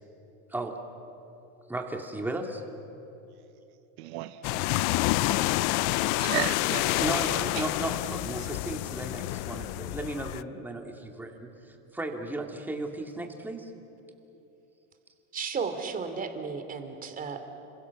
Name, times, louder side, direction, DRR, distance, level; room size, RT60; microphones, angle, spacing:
voice 1, 1.7-2.6 5.1-5.4 7.0-13.7, right 2 dB, 5° right, 2.5 m, -35 dB
voice 2, 4.0-4.9 5.2-5.7 5.9-7.6 8.4-8.5, right 16 dB, 65° right, 0.8 m, -37 dB
sound 1, 4.4-10.4, left 19 dB, 50° left, 0.6 m, -28 dB
voice 3, 15.3-17.5, right 5 dB, 25° right, 2.9 m, -34 dB
29.5 x 26.5 x 7.3 m
supercardioid pair, 135°, 36 cm